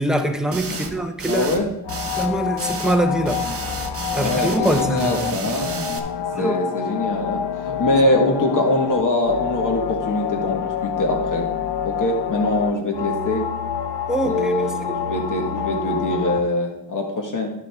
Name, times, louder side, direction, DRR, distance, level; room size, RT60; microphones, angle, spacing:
voice 1, 0.0-1.7 2.2-3.5 4.1-5.1 6.3-6.6 14.1-14.5, right 1 dB, ahead, 0.5 m, -23 dB
sound 1, 0.5-0.9 1.2-1.6 1.9-2.3 2.6-3.0 3.3-6.0, right 4 dB, 35° right, 0.8 m, -31 dB
voice 2, 1.2-1.7 4.1-5.9 6.2-11.5 11.8-13.4 14.2-17.5, left 1 dB, 50° left, 1.5 m, -23 dB
sound 2, 1.8-16.4, left 9 dB, 75° left, 0.6 m, -27 dB
10.5 x 7.4 x 3.4 m
wide cardioid pair, 165°, 42 cm